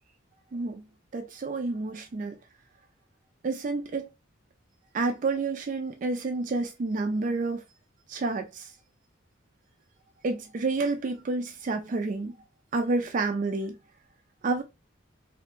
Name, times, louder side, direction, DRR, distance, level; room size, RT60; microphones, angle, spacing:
voice 1, 0.5-0.8 1.1-2.3 3.4-4.1 4.9-7.6 8.1-8.7 10.2-12.3 12.7-13.8 14.4-14.6, right 3 dB, 40° right, 0.3 m, -29 dB
3.2 x 2.1 x 2.8 m
head